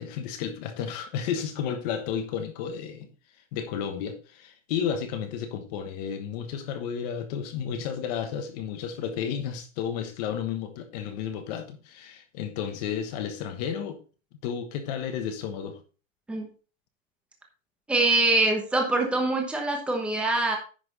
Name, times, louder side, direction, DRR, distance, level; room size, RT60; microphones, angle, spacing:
voice 1, 0.0-3.1 3.5-14.0 14.4-15.8, left 8 dB, 30° left, 8 dB, 1.2 m, -32 dB
voice 2, 17.9-20.6, right 2 dB, 5° right, 2 dB, 1.0 m, -24 dB
10.0 x 6.0 x 4.1 m, 0.36 s
supercardioid pair, 180°, 39 cm